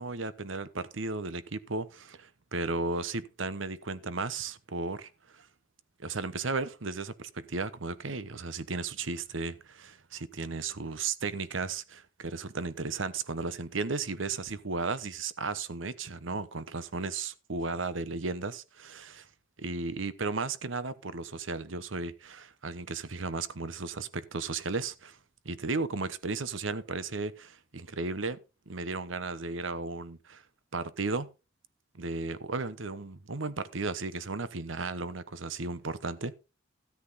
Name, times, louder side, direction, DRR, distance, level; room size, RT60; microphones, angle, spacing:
voice 1, 0.0-5.5 6.0-19.3 19.6-25.2 25.4-28.4 28.7-30.4 30.7-31.3 31.9-36.4, right 3 dB, 75° right, 1.0 m, -35 dB
13.5 x 8.3 x 4.1 m
head